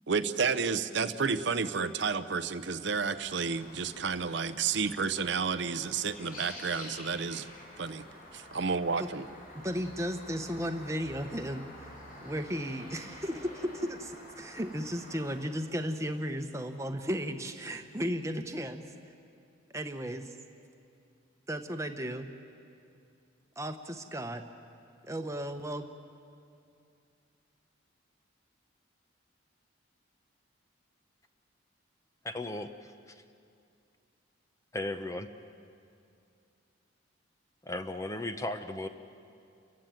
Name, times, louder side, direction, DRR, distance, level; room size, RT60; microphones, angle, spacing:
voice 1, 0.1-7.5 7.8-8.0 8.3-9.3, right 5 dB, 60° right, 12 dB, 0.6 m, -31 dB
sound 1, 3.2-15.4, left 1 dB, 45° left, 4.9 m, -49 dB
voice 2, 9.6-11.7 12.2-18.8 19.7-20.4 21.5-22.3 23.6-24.4 25.0-25.9, equal, 15° right, 6 dB, 1.0 m, -35 dB
voice 3, 32.2-33.2 34.7-35.3 37.6-38.9, left 2 dB, 15° left, 8 dB, 0.7 m, -36 dB
29.5 x 15.0 x 9.0 m, 2.5 s
head